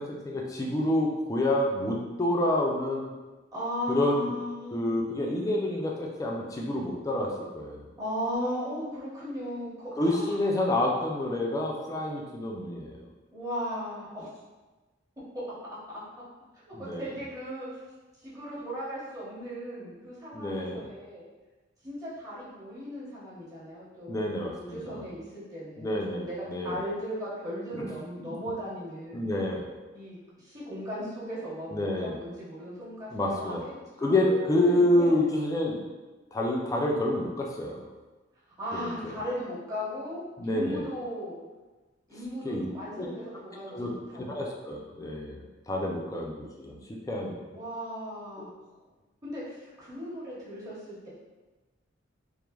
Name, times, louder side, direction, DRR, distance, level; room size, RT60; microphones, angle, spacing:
voice 1, 0.0-3.1 3.9-4.3 4.7-7.8 10.0-13.0 16.7-17.1 20.3-20.8 24.1-25.0 25.8-26.8 27.7-27.9 28.2-28.4 29.1-29.6 31.7-32.2 33.1-33.6 34.0-35.8 36.3-37.9 38.7-39.1 40.4-40.8 42.4-42.7 43.0-43.1 43.7-43.9 44.2-46.8 47.1-47.4 48.4-48.5, left 1 dB, 15° left, -1 dB, 0.3 m, -28 dB
voice 2, 3.5-5.5 8.0-10.5 13.3-14.3 15.3-15.4 15.9-16.0 16.6-17.8 18.2-21.2 21.8-29.3 29.9-33.7 34.0-35.2 38.6-41.4 42.1-44.5 47.5-48.5 49.2-51.1, equal, 20° right, -9 dB, 0.8 m, -37 dB
3.1 x 2.0 x 2.2 m, 1.2 s
head